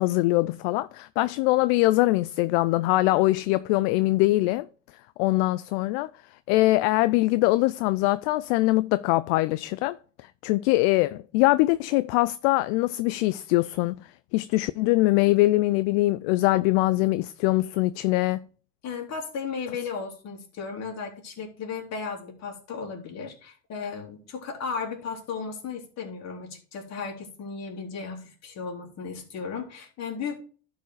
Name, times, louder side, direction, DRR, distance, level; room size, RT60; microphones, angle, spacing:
voice 1, 0.0-4.7 5.2-6.1 6.5-10.0 10.2-14.0 14.3-18.4, left 19 dB, 60° left, 0.5 m, -23 dB
voice 2, 18.8-30.4, left 5 dB, 45° left, 3.4 m, -35 dB
12.0 x 4.8 x 4.8 m
hypercardioid pair, 100°, 38 cm